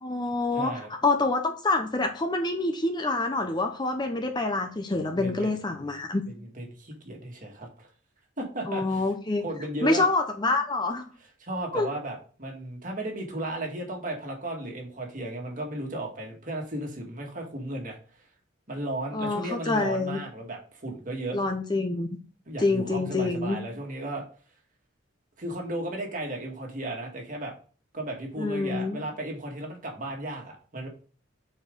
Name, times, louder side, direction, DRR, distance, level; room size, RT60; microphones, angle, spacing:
voice 1, 0.0-6.2 8.7-9.4 9.8-11.1 11.7-11.9 19.1-20.2 21.3-22.1 22.6-23.6 28.4-29.0, left 2 dB, 20° left, 6 dB, 0.6 m, -26 dB
voice 2, 0.5-0.9 5.1-5.5 6.4-7.9 8.4-9.0 9.4-10.1 11.4-18.0 18.7-21.4 22.5-24.2 25.4-27.5 27.9-30.9, right 1 dB, 40° right, 1 dB, 1.7 m, -35 dB
5.6 x 4.4 x 5.1 m, 0.39 s
head